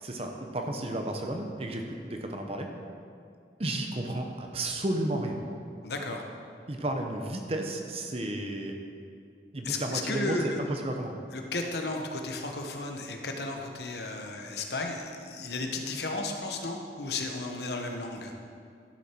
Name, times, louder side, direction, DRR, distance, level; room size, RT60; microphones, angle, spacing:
voice 1, 0.0-2.7 3.6-5.4 6.7-8.8 9.5-11.2, right 1 dB, 35° right, 3 dB, 0.8 m, -32 dB
voice 2, 5.8-6.2 9.6-10.6 11.3-18.3, left 2 dB, 70° left, 3 dB, 1.0 m, -34 dB
11.5 x 6.6 x 4.5 m, 2.3 s
head